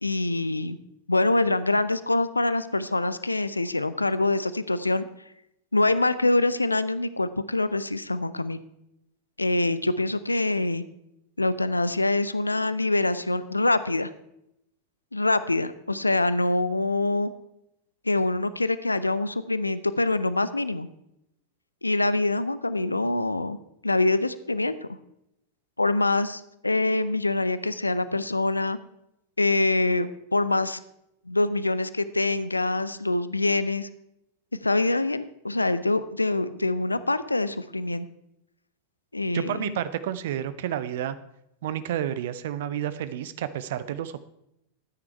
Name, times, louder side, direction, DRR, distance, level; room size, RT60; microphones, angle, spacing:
voice 1, 0.0-0.8 1.1-5.0 5.7-8.6 9.4-10.8 11.4-14.1 15.1-17.3 18.1-20.9 21.8-23.6 23.8-24.7 25.8-28.8 29.4-30.8 31.3-33.9 34.6-38.0 39.1-39.8, left 2 dB, 80° left, 15 dB, 0.6 m, -25 dB
voice 2, 39.3-41.2 41.6-44.2, right 11 dB, 55° right, 14 dB, 0.6 m, -30 dB
14.0 x 9.6 x 4.6 m, 0.81 s
figure-of-eight pair, 90°, 0 cm